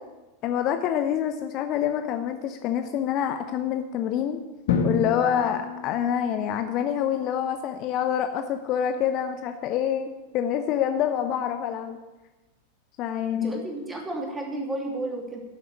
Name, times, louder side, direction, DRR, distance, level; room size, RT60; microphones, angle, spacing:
voice 1, 0.4-4.4 4.8-12.0 13.0-13.6, left 9 dB, 40° left, 7 dB, 0.8 m, -26 dB
Drum, 4.7-6.6, left 5 dB, 55° left, 1.5 m, -28 dB
voice 2, 13.3-15.4, right 2 dB, 10° right, 1 dB, 2.8 m, -32 dB
11.0 x 7.6 x 8.8 m, 1.1 s
figure-of-eight pair, 90°, 0 cm